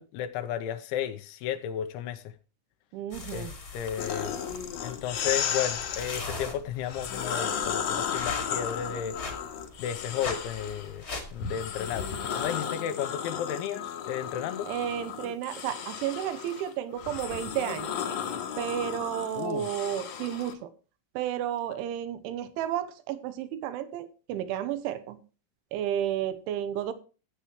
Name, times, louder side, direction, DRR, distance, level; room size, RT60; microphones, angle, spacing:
voice 1, 0.0-2.2 3.3-3.5 3.7-4.3 4.8-9.2 9.8-11.0 11.3-14.7 19.3-19.7, left 9 dB, 85° left, 3.2 m, -33 dB
voice 2, 2.9-3.5 14.7-17.9 18.6-20.7 21.2-25.2 25.7-26.9, right 10 dB, 90° right, 3.3 m, -32 dB
sound 1, 3.1-12.3, left 3 dB, 35° left, 1.5 m, -41 dB
sound 2, 4.0-6.2 6.8-10.9 11.4-20.5, left 8 dB, 65° left, 1.9 m, -34 dB
15.0 x 8.4 x 3.1 m
omnidirectional pair, 5.4 m